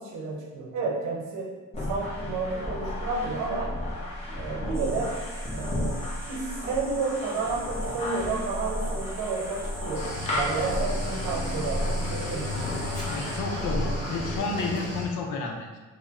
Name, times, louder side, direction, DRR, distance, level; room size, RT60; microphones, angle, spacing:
voice 1, 0.0-1.5 1.9-3.8 4.4-5.2 5.5-6.0 6.3-12.8, right 4 dB, 90° right, -1 dB, 0.7 m, -31 dB
sound 1, 1.7-14.4, left 1 dB, 20° left, 0.9 m, -33 dB
sound 2, 4.7-13.4, right 1 dB, 10° right, 0.5 m, -45 dB
Cricket / Waves surf, 9.9-15.1, left 1 dB, 55° left, 1.2 m, -34 dB
voice 2, 13.1-15.8, left 3 dB, 85° left, 2 dB, 0.6 m, -31 dB
3.0 x 2.1 x 3.6 m, 1.3 s
cardioid pair, 90°, 30 cm